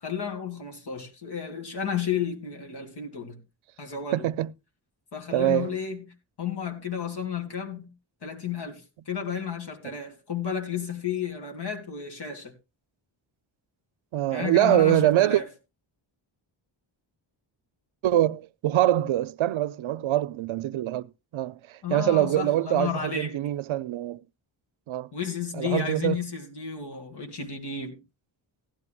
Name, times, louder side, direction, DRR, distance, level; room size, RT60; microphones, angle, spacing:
voice 1, 0.0-3.4 3.8-4.3 5.1-6.1 6.4-7.9 8.2-12.5 14.3-15.5 21.8-23.4 25.1-28.0, left 7 dB, 55° left, 2.7 m, -32 dB
voice 2, 4.1-4.5 5.3-5.7 9.8-10.0 14.1-15.4 18.0-24.2 24.9-25.1 25.5-26.2, right 13 dB, 90° right, 0.6 m, -24 dB
16.0 x 12.5 x 2.3 m
wide cardioid pair, 140°, 46 cm